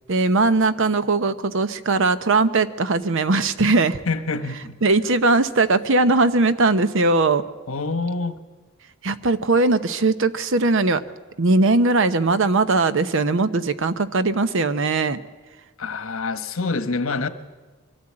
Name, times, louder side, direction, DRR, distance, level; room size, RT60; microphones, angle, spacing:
voice 1, 0.1-4.0 4.8-7.4 9.0-11.0 11.4-15.2, right 3 dB, 65° right, 13 dB, 0.8 m, -19 dB
voice 2, 4.1-4.8 7.7-8.4 15.8-17.3, left 3 dB, 75° left, 10 dB, 1.2 m, -26 dB
23.0 x 13.5 x 8.7 m, 1.4 s
head